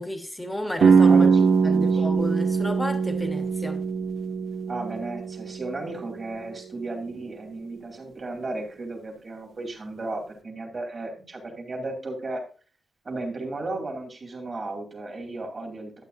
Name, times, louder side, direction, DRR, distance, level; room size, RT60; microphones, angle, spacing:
voice 1, 0.0-1.3 1.6-3.8, left 1 dB, 5° left, 1.4 m, -32 dB
sound 1, 0.8-6.6, right 5 dB, 65° right, 0.9 m, -22 dB
voice 2, 1.1-2.0 4.7-12.4 13.0-16.0, right 2 dB, 35° right, 2.5 m, -34 dB
12.0 x 8.4 x 2.6 m
wide cardioid pair, 150°, 0 cm